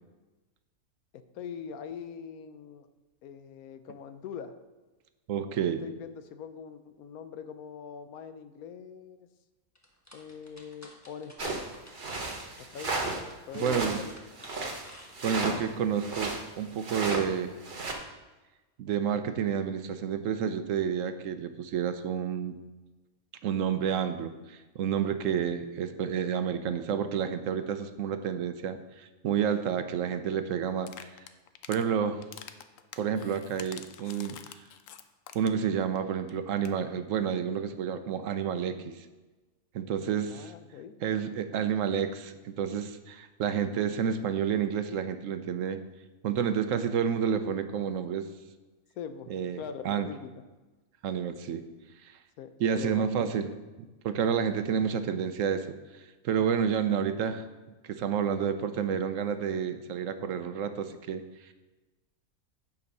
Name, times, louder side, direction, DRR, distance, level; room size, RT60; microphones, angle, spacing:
voice 1, 1.3-2.9 3.2-4.6 5.5-9.3 10.1-11.8 12.6-13.0 13.5-14.1 25.3-25.4 30.0-30.1 40.3-40.9 49.0-50.4 52.4-53.3, left 7 dB, 85° left, 10 dB, 1.2 m, -43 dB
voice 2, 5.3-5.8 13.5-14.0 15.2-17.5 18.8-22.5 23.4-31.1 31.7-32.2 33.0-34.6 35.3-39.1 39.7-40.5 41.0-45.8 46.2-48.3 49.3-49.6 49.8-50.1 51.0-51.6 52.0-52.1 52.6-53.5 54.0-55.7 56.0-57.4 57.8-61.5, right 7 dB, 70° right, 9 dB, 1.0 m, -30 dB
sound 1, 9.7-15.6, equal, 10° left, 1.2 m, -54 dB
sound 2, 11.4-13.3 13.5-16.4 16.8-17.2 17.6-17.9, right 2 dB, 35° right, 1.2 m, -34 dB
sound 3, 30.8-31.8 32.2-35.7 36.0-36.1 36.3-36.4 36.6-36.8, left 9 dB, 70° left, 0.9 m, -46 dB
9.1 x 5.5 x 5.3 m, 1.2 s
omnidirectional pair, 1.5 m